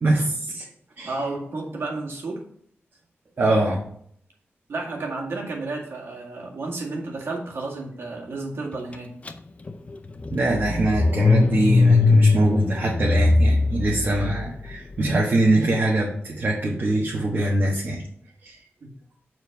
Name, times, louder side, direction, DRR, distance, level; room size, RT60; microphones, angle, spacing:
voice 1, 0.0-0.7 1.0-1.2 3.4-3.8 10.3-18.0 18.4-18.6, right 1 dB, 50° right, -3 dB, 1.3 m, -23 dB
voice 2, 1.0-2.5 4.7-9.1 18.8-18.9, right 3 dB, 65° right, -1 dB, 1.9 m, -32 dB
Car / Engine starting, 9.3-9.4 9.7-14.9, left 3 dB, 30° left, 0.5 m, -20 dB
7.0 x 4.5 x 5.8 m, 0.65 s
wide cardioid pair, 170°, 4 cm